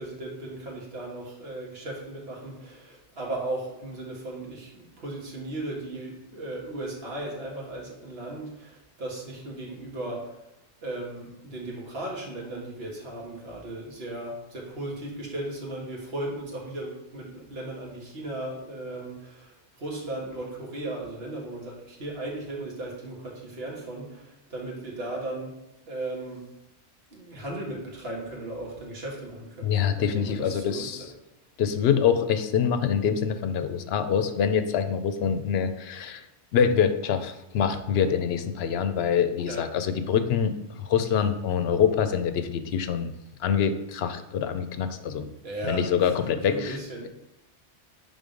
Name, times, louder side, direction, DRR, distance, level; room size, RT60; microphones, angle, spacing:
voice 1, 0.0-10.3 10.8-25.6 25.9-26.5 27.1-31.1 39.5-39.6 45.4-47.1, right 2 dB, 65° right, -2 dB, 1.7 m, -36 dB
voice 2, 29.6-31.1 31.6-36.2 36.5-43.1 43.4-45.2 45.6-46.8 47.0-47.1, left 7 dB, 70° left, 9 dB, 0.8 m, -25 dB
5.4 x 3.8 x 5.0 m, 0.92 s
omnidirectional pair, 1.1 m